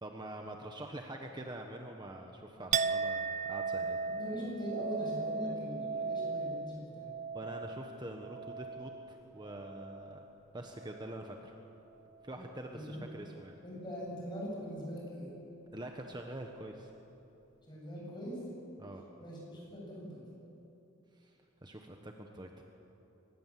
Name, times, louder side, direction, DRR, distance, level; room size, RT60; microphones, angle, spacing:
voice 1, 0.0-4.0 7.3-10.3 10.5-11.6 12.2-13.5 15.7-16.9 18.8-19.0 21.1-22.6, right 1 dB, 20° right, 3 dB, 1.2 m, -45 dB
Chink clink, 2.7-10.4 10.7-11.4, right 5 dB, 40° right, 0.5 m, -37 dB
voice 2, 4.2-7.1 12.7-13.0 13.6-15.3 17.7-18.4 19.2-20.2, equal, 25° left, -3 dB, 7.9 m, -41 dB
24.0 x 20.5 x 7.6 m, 3.0 s
head